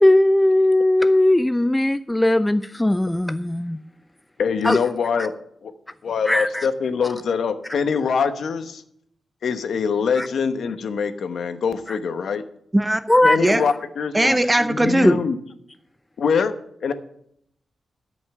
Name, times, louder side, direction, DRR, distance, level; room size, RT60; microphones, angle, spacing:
voice 1, 0.0-3.8 4.6-4.8 6.3-6.7 10.2-10.3 11.9-12.0 13.1-13.4, left 1 dB, 10° left, 12 dB, 0.3 m, -18 dB
voice 2, 4.4-5.3 5.6-5.7 6.0-8.8 9.4-12.4 13.2-14.3 14.6-15.4 16.2-16.5 16.8-16.9, left 6 dB, 70° left, 10 dB, 1.0 m, -23 dB
voice 3, 14.1-15.2, right 1 dB, 10° right, 10 dB, 0.7 m, -18 dB
13.0 x 5.3 x 7.7 m, 0.71 s
wide cardioid pair, 140°, 0 cm